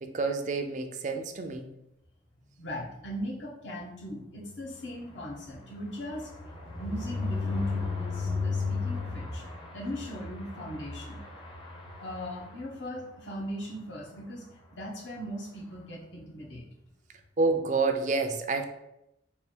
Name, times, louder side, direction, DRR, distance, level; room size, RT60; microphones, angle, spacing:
voice 1, 0.0-1.7 17.4-18.7, right 3 dB, 40° right, 6 dB, 0.4 m, -28 dB
voice 2, 2.6-6.3 6.7-9.4 9.7-11.2 12.0-16.6, equal, 65° left, -3 dB, 1.0 m, -39 dB
sound 1, 4.3-13.1 13.5-13.7 13.9-14.0 14.3-14.6, left 4 dB, 25° left, 0.6 m, -35 dB
3.3 x 2.3 x 4.2 m, 0.85 s
head